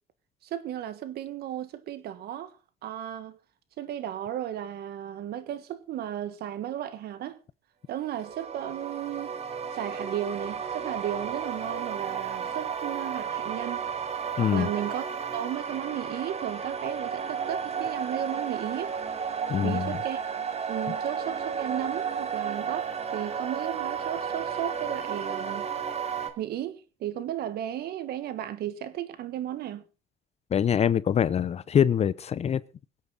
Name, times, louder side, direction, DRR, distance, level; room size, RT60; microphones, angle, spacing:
voice 1, 0.4-2.5 2.8-3.4 3.8-7.4 7.9-9.4 9.7-13.9 14.4-19.0 19.6-20.2 20.7-25.7 26.4-29.8, right 11 dB, 70° right, 1.7 m, -34 dB
sound 1, 8.1-26.3, right 7 dB, 40° right, 2.5 m, -33 dB
voice 2, 14.4-14.7 19.5-20.0 30.5-32.6, left 8 dB, 40° left, 0.6 m, -24 dB
22.5 x 8.5 x 4.0 m
cardioid pair, 110°, 17 cm